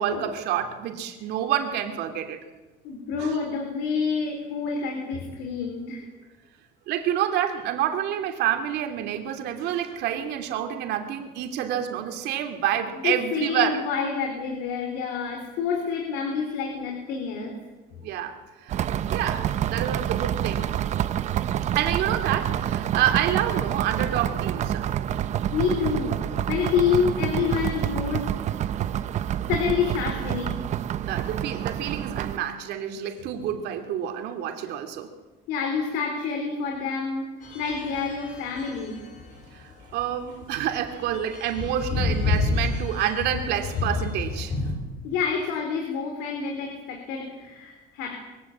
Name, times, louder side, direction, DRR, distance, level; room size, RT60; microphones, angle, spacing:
voice 1, 0.0-2.4 3.2-3.4 6.9-13.8 18.0-18.4 18.6-18.8 19.1-20.7 21.7-24.9 31.0-35.1 39.5-44.5, right 10 dB, 65° right, 5 dB, 2.7 m, -28 dB
voice 2, 2.8-6.1 13.0-17.5 17.9-18.0 25.5-26.2 26.5-28.3 29.5-30.6 35.5-39.0 45.0-48.2, left 6 dB, 85° left, 2 dB, 3.9 m, -28 dB
sound 1, 18.7-32.4, right 10 dB, 40° right, 0.7 m, -28 dB
sound 2, 37.4-44.7, left 3 dB, 45° left, 5.3 m, -30 dB
22.5 x 16.0 x 8.6 m, 1.2 s
cardioid pair, 160°, 18 cm